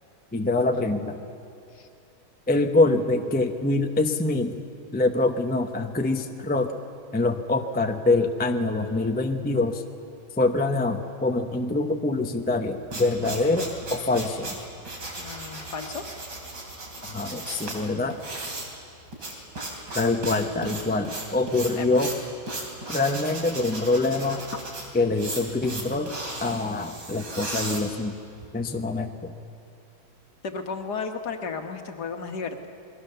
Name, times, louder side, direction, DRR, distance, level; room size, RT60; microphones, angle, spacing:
voice 1, 0.3-1.2 2.5-4.6 4.9-6.7 7.1-9.8 10.4-14.6 17.1-18.2 19.9-22.1 22.9-24.4 24.9-26.1 26.4-28.1 28.5-29.3, left 2 dB, 10° left, 5 dB, 0.7 m, -25 dB
sound 1, 12.5-28.5, right 2 dB, 75° right, 4.2 m, -36 dB
voice 2, 15.2-16.0 19.2-19.5 21.8-21.9 30.4-32.7, left 5 dB, 65° left, 5 dB, 2.0 m, -34 dB
28.5 x 21.5 x 6.8 m, 2.7 s
omnidirectional pair, 2.0 m